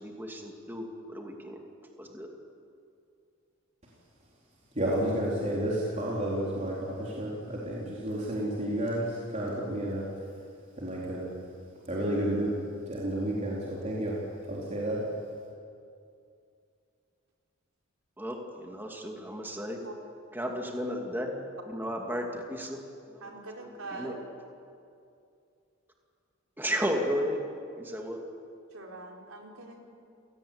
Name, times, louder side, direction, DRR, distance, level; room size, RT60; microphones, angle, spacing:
voice 1, 0.0-2.3 18.2-19.8 20.3-22.8 23.1-24.1 26.6-27.4 27.8-28.2, equal, 10° right, 1 dB, 2.5 m, -34 dB
voice 2, 4.7-10.1 10.8-11.3 11.9-12.5 12.9-14.2 14.5-15.0, right 1 dB, 35° right, -5 dB, 4.1 m, -31 dB
voice 3, 23.2-24.2 28.7-29.8, right 2 dB, 90° right, 0 dB, 4.4 m, -43 dB
29.5 x 18.0 x 8.9 m, 2.5 s
head